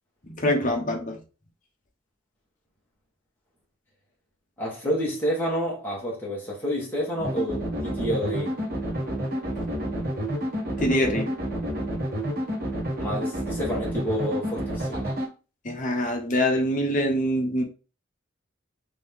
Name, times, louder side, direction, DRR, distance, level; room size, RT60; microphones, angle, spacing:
voice 1, 0.2-1.2 10.8-11.3 15.6-17.6, equal, 40° left, 0.9 m, -24 dB
voice 2, 4.6-8.6 13.0-15.1, equal, 10° left, 1.4 m, -29 dB
sound 1, 7.2-15.3, equal, 45° right, 1.5 m, -29 dB
3.7 x 3.5 x 3.6 m
head